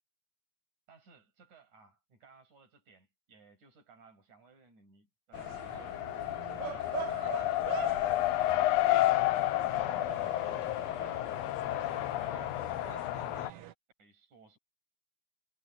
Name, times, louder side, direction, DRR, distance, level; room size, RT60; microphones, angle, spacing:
voice 1, 0.9-9.1 9.8-10.1 11.4-13.7 14.0-14.6, right 4 dB, 90° right, 8.1 m, -60 dB
Race car auto racing, 5.3-13.5, left 15 dB, 80° left, 1.6 m, -31 dB
sound 1, 5.3-13.7, right 9 dB, 65° right, 1.8 m, -44 dB
omnidirectional pair, 3.3 m